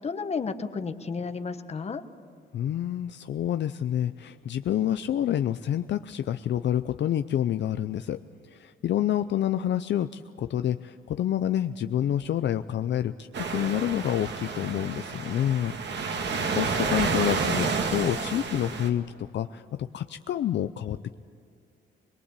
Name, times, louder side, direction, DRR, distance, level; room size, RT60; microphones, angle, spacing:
voice 1, 0.0-2.0, left 5 dB, 30° left, 8 dB, 1.2 m, -32 dB
voice 2, 2.5-8.2 8.5-15.7 16.0-21.1, left 11 dB, 60° left, 10 dB, 0.6 m, -28 dB
sound 1, 13.3-18.9, right 4 dB, 60° right, 2.1 m, -30 dB
23.0 x 21.5 x 8.3 m, 2.3 s
wide cardioid pair, 155°, 20 cm